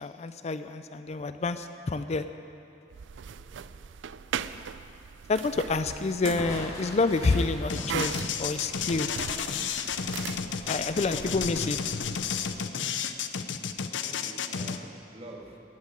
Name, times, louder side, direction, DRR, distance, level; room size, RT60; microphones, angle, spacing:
voice 1, 0.0-2.2 5.3-9.1 10.7-11.8, left 3 dB, 35° left, 10 dB, 0.4 m, -28 dB
sound 1, 2.9-12.6, right 7 dB, 80° right, 0.4 m, -40 dB
voice 2, 3.3-3.7 11.0-11.3 14.0-15.6, right 1 dB, 35° right, 0 dB, 1.9 m, -47 dB
Crushing, 6.4-10.2, equal, 20° left, 2.3 m, -42 dB
sound 2, 7.7-14.8, left 7 dB, 80° left, 0.7 m, -32 dB
16.5 x 7.7 x 9.8 m, 2.7 s
head